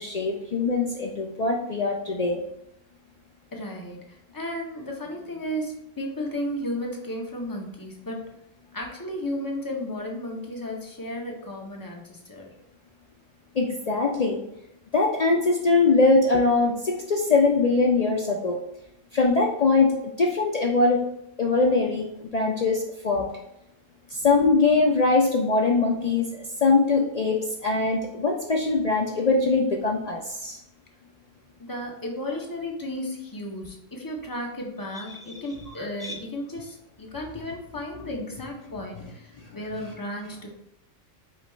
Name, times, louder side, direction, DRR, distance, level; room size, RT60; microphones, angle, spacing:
voice 1, 0.0-2.4 13.6-14.4 14.9-18.6 19.1-19.9 20.2-21.0 21.4-22.1 22.3-23.3 24.2-26.2 26.6-30.6 35.2-35.3 36.0-36.1, left 3 dB, 60° left, 0 dB, 0.4 m, -22 dB
voice 2, 3.5-4.0 4.3-8.2 8.7-12.5 31.6-40.6, left 1 dB, 20° left, 0 dB, 0.7 m, -34 dB
5.1 x 2.4 x 4.3 m, 0.83 s
omnidirectional pair, 1.3 m